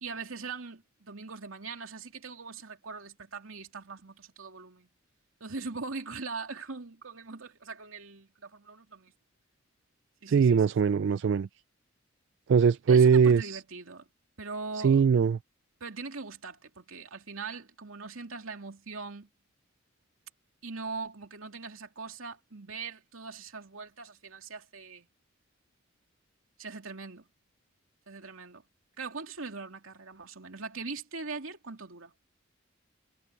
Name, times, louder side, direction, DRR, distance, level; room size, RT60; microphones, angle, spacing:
voice 1, 0.0-4.9 5.4-9.1 10.2-10.7 12.9-14.1 14.4-15.0 15.8-19.3 20.6-25.1 26.6-27.3 28.1-28.6 29.0-32.1, right 4 dB, 85° right, 2.7 m, -41 dB
voice 2, 10.3-11.5 12.5-13.6 14.8-15.4, right 6 dB, 60° right, 0.3 m, -21 dB
head